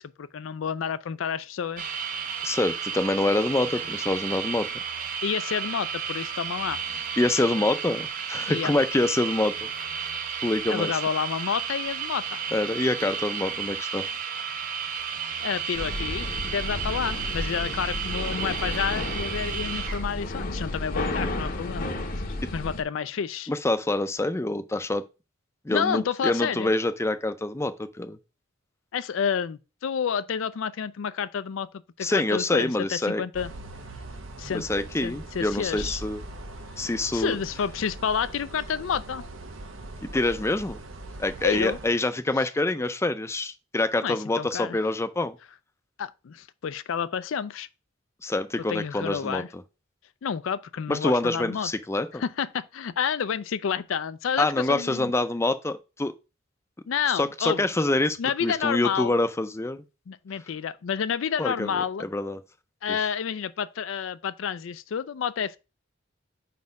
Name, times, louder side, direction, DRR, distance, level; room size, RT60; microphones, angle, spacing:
voice 1, 0.0-1.9 5.2-7.0 8.5-8.7 10.7-12.4 15.4-21.9 22.5-23.5 25.7-26.7 28.9-31.7 32.0-33.5 34.4-34.6 35.0-36.0 37.1-39.2 41.4-41.8 44.0-44.8 46.0-47.7 48.7-49.5 50.2-51.7 52.2-55.1 56.9-57.7 58.2-59.2 60.1-62.1 62.8-65.6, left 7 dB, 75° left, 0.4 m, -29 dB
sound 1, 1.8-20.0, right 7 dB, 45° right, 0.6 m, -33 dB
voice 2, 2.4-4.8 7.2-10.2 10.4-10.9 12.5-14.1 23.5-25.0 25.6-28.2 32.0-33.2 34.5-36.2 36.8-37.4 40.0-40.8 41.2-45.4 48.2-49.6 50.9-52.2 54.4-56.1 57.1-59.8 61.4-62.4 62.9-63.1, left 2 dB, 15° left, 0.4 m, -26 dB
sound 2, 15.7-22.8, left 1 dB, 45° left, 0.8 m, -32 dB
sound 3, 33.3-41.9, right 2 dB, 85° right, 0.8 m, -41 dB
4.7 x 4.2 x 5.2 m
head